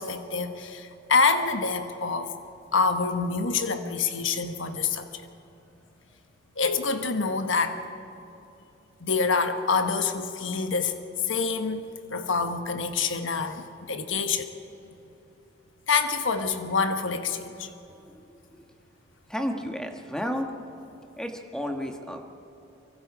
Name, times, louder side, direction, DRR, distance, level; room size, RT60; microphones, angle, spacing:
voice 1, 0.0-2.3 2.7-5.3 6.6-7.8 9.0-10.9 11.2-11.8 12.1-14.5 15.9-17.7, left 4 dB, 75° left, 7 dB, 1.2 m, -26 dB
voice 2, 19.3-20.5 21.2-22.3, equal, 5° left, 4 dB, 1.5 m, -32 dB
24.5 x 23.5 x 5.0 m, 2.9 s
head